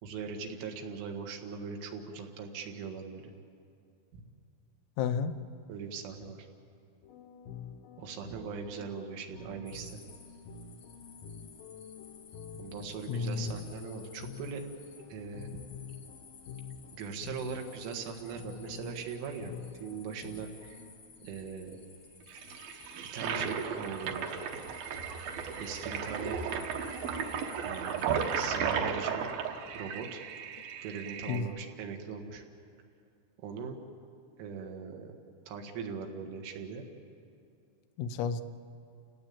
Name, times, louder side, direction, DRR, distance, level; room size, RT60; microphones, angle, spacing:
voice 1, 0.0-3.3 4.1-4.2 5.7-6.5 8.0-10.0 12.5-14.6 15.1-15.5 16.9-19.5 19.8-20.8 21.2-21.8 23.1-24.3 25.6-26.4 27.6-29.3 29.7-30.2 30.8-32.4 33.4-33.8 34.4-35.1 35.5-36.8, right 6 dB, 85° right, 3 dB, 4.2 m, -40 dB
voice 2, 5.0-5.4 13.1-13.6 31.3-31.5 38.0-38.4, left 6 dB, 90° left, 8 dB, 3.3 m, -31 dB
sound 1, 7.0-20.9, left 6 dB, 75° left, 2.0 m, -48 dB
sound 2, 9.7-28.5, left 5 dB, 55° left, 1.4 m, -55 dB
Toilet flush, 22.3-31.4, right 6 dB, 65° right, 2.5 m, -35 dB
29.5 x 17.0 x 8.6 m, 2.5 s
omnidirectional pair, 5.5 m